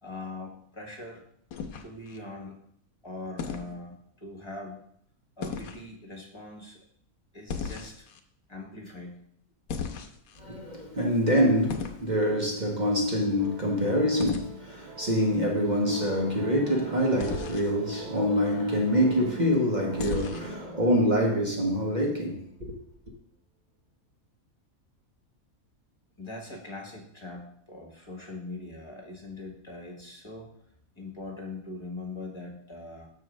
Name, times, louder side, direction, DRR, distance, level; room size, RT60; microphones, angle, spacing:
voice 1, 0.0-1.2 1.8-2.6 3.0-4.8 5.4-6.8 7.3-8.1 8.5-9.2 26.2-30.5 31.0-33.1, left 2 dB, 20° left, 1.4 m, -41 dB
sound 1, 1.5-2.2 3.4-3.7 5.4-5.8 7.5-8.2 9.7-10.4 11.7-12.0 14.2-14.5 17.2-17.7 20.0-20.6, left 6 dB, 80° left, 1.2 m, -35 dB
voice 2, 10.4-22.8, equal, 35° right, 1.0 m, -25 dB
sound 2, 13.4-22.4, right 6 dB, 80° right, 1.2 m, -43 dB
6.8 x 4.6 x 6.2 m
omnidirectional pair, 1.5 m